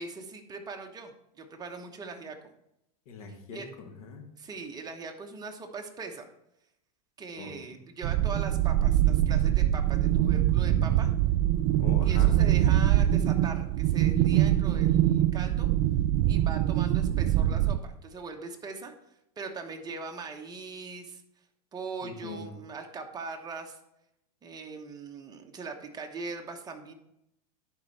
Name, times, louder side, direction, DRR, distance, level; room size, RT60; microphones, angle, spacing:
voice 1, 0.0-2.5 3.5-3.7 4.4-6.2 7.2-11.1 12.0-15.7 16.3-18.9 19.4-21.2 21.7-23.8 24.4-26.9, right 4 dB, 20° right, 3 dB, 1.1 m, -41 dB
voice 2, 3.1-4.2 7.4-7.7 11.8-12.4 22.0-22.5, left 4 dB, 65° left, 4 dB, 1.7 m, -41 dB
sound 1, 8.0-17.8, right 12 dB, 45° right, 0.4 m, -24 dB
10.5 x 4.5 x 4.2 m, 0.81 s
supercardioid pair, 125°, 20 cm